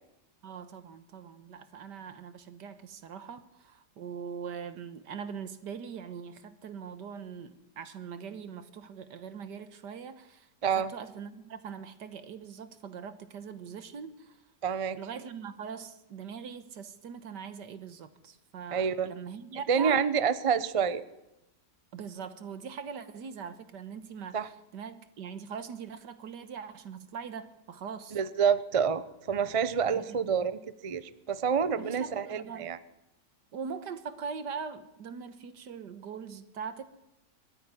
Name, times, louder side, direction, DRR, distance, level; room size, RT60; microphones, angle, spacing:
voice 1, 0.4-10.5 10.8-14.4 14.9-20.0 21.9-24.4 24.7-28.2 29.9-30.0 31.8-32.7 33.5-36.8, right 6 dB, 75° right, 11 dB, 1.9 m, -41 dB
voice 2, 10.6-10.9 14.6-15.0 18.7-19.1 19.7-21.0 24.3-24.5 28.1-32.8, right 7 dB, 35° right, 14 dB, 0.5 m, -28 dB
21.0 x 13.5 x 9.8 m, 0.92 s
omnidirectional pair, 1.9 m